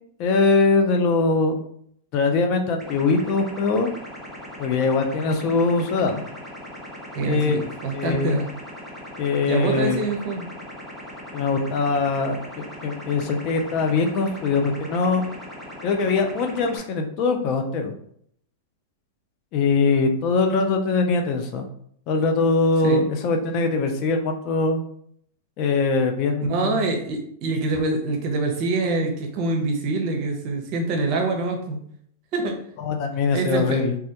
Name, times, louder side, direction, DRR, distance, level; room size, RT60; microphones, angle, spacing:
voice 1, 0.2-1.5 2.1-3.9 4.6-6.2 7.3-7.6 7.9-8.4 9.2-10.0 11.3-15.2 15.8-17.9 19.5-21.6 22.1-24.8 25.6-26.8 32.8-34.0, left 4 dB, 45° left, 5 dB, 0.4 m, -22 dB
sound 1, 2.8-16.8, equal, ahead, 0.6 m, -39 dB
voice 2, 7.1-8.5 9.4-10.5 22.8-23.0 26.4-31.8 32.3-32.6 33.3-33.8, right 3 dB, 45° right, 3 dB, 0.6 m, -25 dB
2.2 x 2.1 x 2.8 m, 0.67 s
hypercardioid pair, 130°, 0 cm